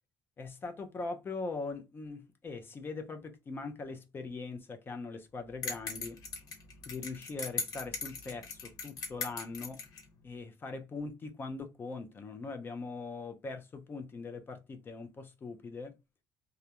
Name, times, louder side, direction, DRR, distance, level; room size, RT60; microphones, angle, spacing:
voice 1, 0.4-6.2 6.9-9.8 10.2-15.9, left 3 dB, 25° left, 0.5 m, -41 dB
sound 1, 5.6-10.0, left 5 dB, 50° left, 1.0 m, -39 dB
2.4 x 2.1 x 2.8 m
cardioid pair, 150°, 8 cm